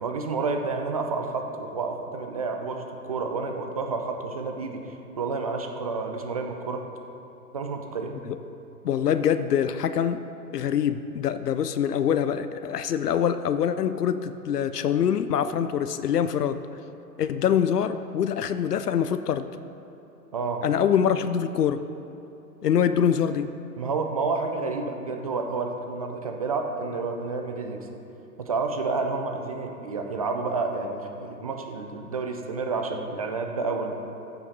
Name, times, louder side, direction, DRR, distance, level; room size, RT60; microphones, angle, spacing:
voice 1, 0.0-6.8 7.5-8.1 20.3-20.6 23.8-27.9 28.4-34.0, right 4 dB, 25° right, 4 dB, 0.4 m, -30 dB
voice 2, 8.8-10.3 10.5-16.6 17.2-19.5 20.6-21.8 22.6-23.5, left 8 dB, 75° left, 11 dB, 0.6 m, -24 dB
14.0 x 5.8 x 4.1 m, 2.9 s
figure-of-eight pair, 120°, 47 cm